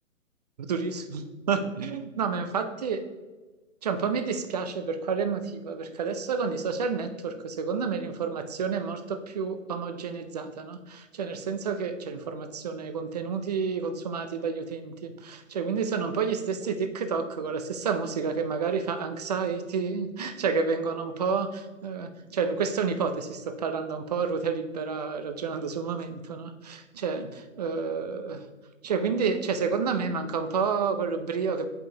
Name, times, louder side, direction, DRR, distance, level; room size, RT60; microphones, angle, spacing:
voice 1, 0.6-3.0 3.8-28.4 28.8-31.7, right 5 dB, 30° right, 8 dB, 0.4 m, -30 dB
7.6 x 5.3 x 2.8 m, 1.2 s
hypercardioid pair, 135°, 41 cm